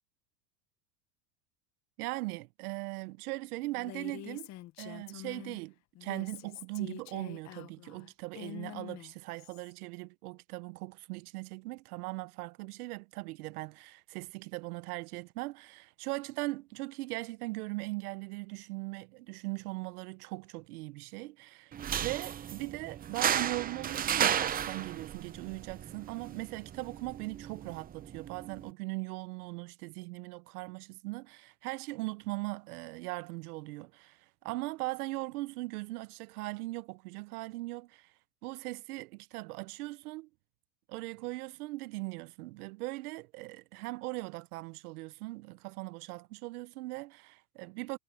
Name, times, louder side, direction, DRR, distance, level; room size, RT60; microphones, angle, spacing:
voice 1, 2.0-4.5 4.8-5.7 6.0-38.1 38.4-40.3 40.9-48.0, right 22 dB, 80° right, 0.9 m, -39 dB
Female speech woman speaking, 3.7-5.6 6.0-9.7, left 15 dB, 40° left, 0.8 m, -46 dB
sound 1, 21.7-28.7, right 9 dB, 20° right, 0.7 m, -34 dB
supercardioid pair, 135°, 44 cm